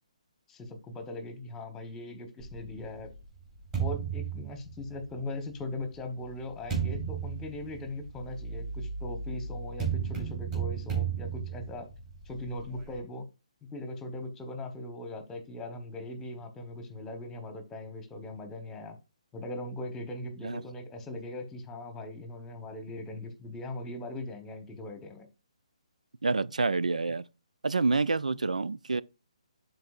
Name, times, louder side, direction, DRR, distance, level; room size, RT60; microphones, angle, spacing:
voice 1, 0.5-3.1 3.8-11.9 12.2-13.3 13.6-19.0 19.3-25.3, left 2 dB, 10° left, 1.3 m, -40 dB
sound 1, 2.4-5.2 5.9-13.0, right 7 dB, 20° right, 3.5 m, -35 dB
voice 2, 26.2-27.2 27.6-29.0, right 3 dB, 90° right, 0.4 m, -28 dB
12.0 x 4.0 x 2.4 m
hypercardioid pair, 145°, 4 cm